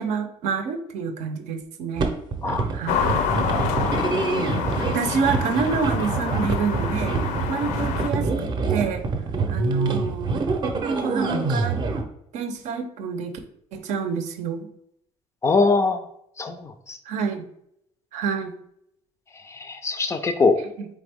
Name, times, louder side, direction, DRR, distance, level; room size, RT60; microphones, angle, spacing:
voice 1, 0.0-2.1 2.7-3.0 4.9-7.2 7.5-9.0 9.5-10.4 10.9-11.8 12.3-13.4 13.7-14.7 17.1-17.4 18.1-18.5 20.8-20.9, right 5 dB, 75° right, 8 dB, 0.6 m, -27 dB
sound 1, 2.0-12.0, right 4 dB, 35° right, 0.6 m, -26 dB
sound 2, 2.9-8.1, left 7 dB, 85° left, 0.5 m, -27 dB
voice 2, 15.4-16.1 16.4-17.0 19.4-20.6, left 4 dB, 25° left, 9 dB, 0.3 m, -22 dB
4.2 x 3.6 x 3.4 m, 0.73 s
cardioid pair, 150°, 12 cm